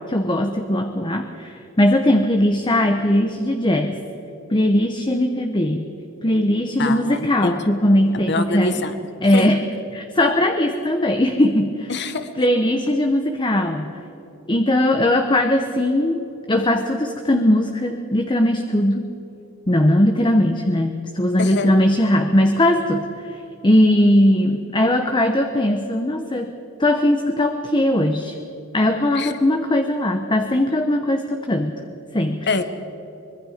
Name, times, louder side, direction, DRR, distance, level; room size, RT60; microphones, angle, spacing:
voice 1, 0.1-4.0 4.5-5.8 6.2-8.9 9.2-9.6 9.9-11.9 12.4-13.9 14.5-19.1 19.7-23.4 23.6-26.5 26.8-28.3 28.7-31.8 32.1-32.4, left 1 dB, 20° left, 5 dB, 1.0 m, -19 dB
voice 2, 6.8-7.5 8.1-8.9 9.3-9.5 11.9-12.3 21.4-21.7 29.1-29.3 32.5-32.6, left 2 dB, 55° left, 9 dB, 1.4 m, -24 dB
24.5 x 21.5 x 5.1 m, 2.9 s
head